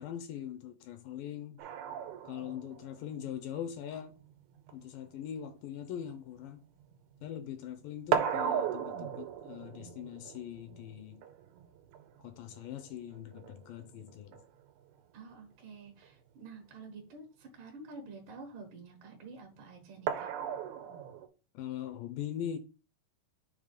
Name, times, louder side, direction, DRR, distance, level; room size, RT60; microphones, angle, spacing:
voice 1, 0.0-1.6 2.2-4.1 4.7-6.6 7.2-11.2 12.2-14.4 21.5-22.6, left 10 dB, 80° left, 2.2 m, -41 dB
sound 1, 1.6-7.3 7.6-14.6 16.0-16.1 16.5-16.6 20.1-21.3, right 8 dB, 85° right, 2.7 m, -37 dB
voice 2, 15.1-20.3, right 3 dB, 65° right, 2.7 m, -49 dB
6.7 x 3.6 x 5.0 m
omnidirectional pair, 4.3 m